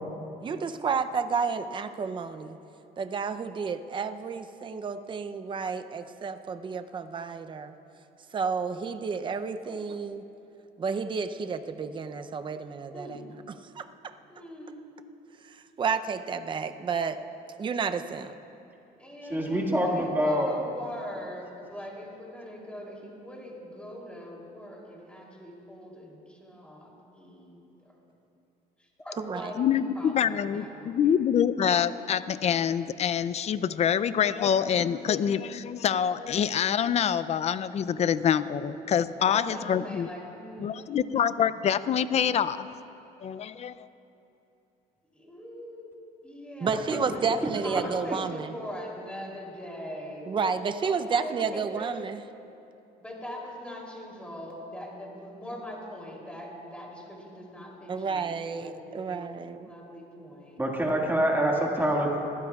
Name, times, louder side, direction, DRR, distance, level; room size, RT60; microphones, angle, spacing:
voice 1, 0.4-2.6 3.0-7.8 8.3-10.3 10.8-14.2 15.4-17.2 17.6-18.3 29.2-29.5 46.6-48.5 50.3-52.2 57.9-59.7, right 5 dB, 30° right, 9 dB, 0.6 m, -31 dB
voice 2, 14.3-14.8 19.0-27.9 28.8-31.1 39.3-41.1 45.1-45.9 46.2-50.3 50.8-51.9 53.0-59.3 59.6-60.6 61.1-61.7 62.1-62.2, equal, 5° left, -3 dB, 3.1 m, -42 dB
voice 3, 19.3-20.5 60.6-62.2, equal, 10° right, -1 dB, 1.9 m, -25 dB
voice 4, 29.6-40.1 40.6-42.7 43.2-43.9, left 8 dB, 40° left, 15 dB, 0.4 m, -26 dB
22.0 x 16.0 x 2.4 m, 2.8 s
cardioid pair, 110°, 17 cm